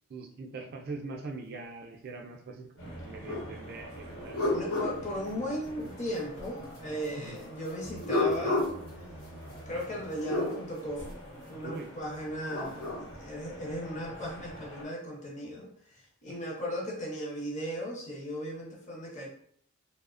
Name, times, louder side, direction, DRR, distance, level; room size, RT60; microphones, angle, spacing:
voice 1, 0.1-4.4 7.2-7.4 11.6-11.9 16.3-16.4, right 3 dB, 45° right, 3 dB, 0.3 m, -42 dB
sound 1, 2.8-14.8, equal, 50° left, 1.0 m, -47 dB
sound 2, 3.3-3.5 3.9-5.9 7.8-10.5 12.2-13.1, left 2 dB, 85° left, 0.9 m, -33 dB
voice 2, 4.5-8.7 9.7-11.1 11.5-12.9 13.1-19.3, equal, 30° left, -2 dB, 0.6 m, -37 dB
2.7 x 2.0 x 2.4 m, 0.63 s
head